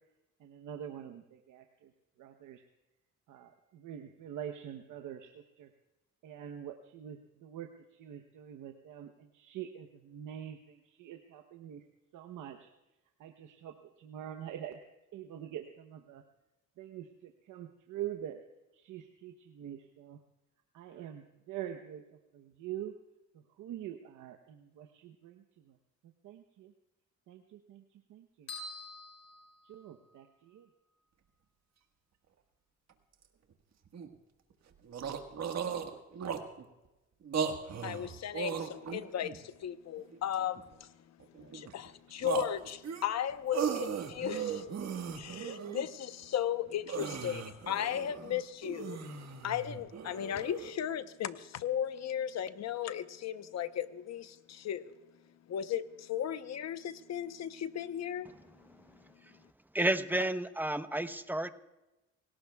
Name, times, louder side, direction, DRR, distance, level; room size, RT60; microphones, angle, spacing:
voice 1, 0.4-1.9 2.2-2.6 3.3-5.7 6.2-11.8 12.1-12.7 13.2-14.8 15.1-16.2 16.8-18.4 18.7-20.2 20.7-22.9 23.3-25.8 26.0-26.7 27.3-28.5 29.6-30.7, right 10 dB, 80° right, 1.0 m, -45 dB
sound 1, 28.5-30.2, left 2 dB, 75° left, 4.0 m, -47 dB
sound 2, 32.9-33.0 33.2-33.3 33.9-34.1 34.5-34.6 34.8-36.6 37.2-39.4 40.0-40.8 41.2-41.9 42.2-45.9 46.2-46.3 46.7-50.7, right 7 dB, 60° right, 1.6 m, -37 dB
voice 2, 37.8-55.0 55.5-58.3, left 10 dB, 60° left, 0.9 m, -36 dB
voice 3, 59.7-61.5, right 1 dB, 5° right, 0.9 m, -31 dB
28.0 x 18.0 x 2.3 m
cardioid pair, 90°, 30 cm